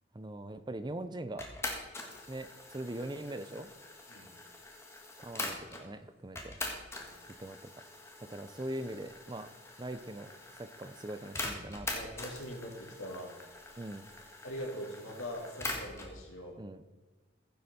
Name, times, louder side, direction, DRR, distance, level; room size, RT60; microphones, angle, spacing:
voice 1, 0.1-1.5 2.3-3.7 5.2-6.5 7.4-7.7 8.2-9.5 9.8-11.9 13.8-14.0 16.6-16.9, right 1 dB, 20° right, 11 dB, 0.6 m, -41 dB
sound 1, 1.4-5.9 6.4-16.1, left 2 dB, 15° left, 1.6 m, -43 dB
voice 2, 11.9-13.3 14.4-16.5, equal, 90° left, -2 dB, 3.8 m, -42 dB
15.0 x 7.8 x 4.3 m, 1.3 s
head